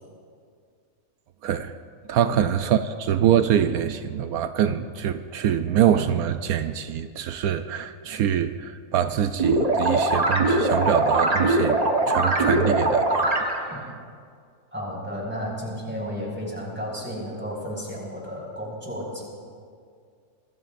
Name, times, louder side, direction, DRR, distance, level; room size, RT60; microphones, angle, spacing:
voice 1, 2.1-11.8 12.1-13.3 13.5-14.0, right 9 dB, 85° right, 9 dB, 1.1 m, -24 dB
sound 1, 9.4-13.8, right 2 dB, 30° right, 1.3 m, -22 dB
voice 2, 14.7-19.3, equal, 5° right, -3 dB, 5.3 m, -33 dB
26.5 x 21.0 x 2.6 m, 2.2 s
omnidirectional pair, 1.5 m